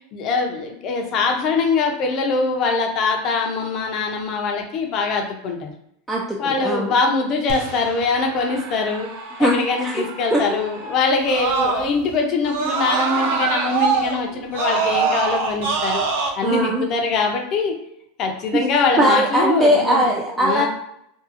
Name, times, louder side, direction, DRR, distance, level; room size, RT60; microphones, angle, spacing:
voice 1, 0.1-5.7 6.4-9.1 9.4-16.1 16.4-17.7 18.2-20.0 20.4-20.7, left 4 dB, 40° left, 2 dB, 0.6 m, -22 dB
voice 2, 6.1-6.9 9.4-10.0 10.3-10.4 16.4-16.9 19.0-20.7, equal, 10° right, -3 dB, 0.4 m, -19 dB
Screaming, 7.5-12.1 12.4-16.3, right 4 dB, 70° right, 0.5 m, -25 dB
2.7 x 2.3 x 2.5 m, 0.75 s
supercardioid pair, 130°, 0 cm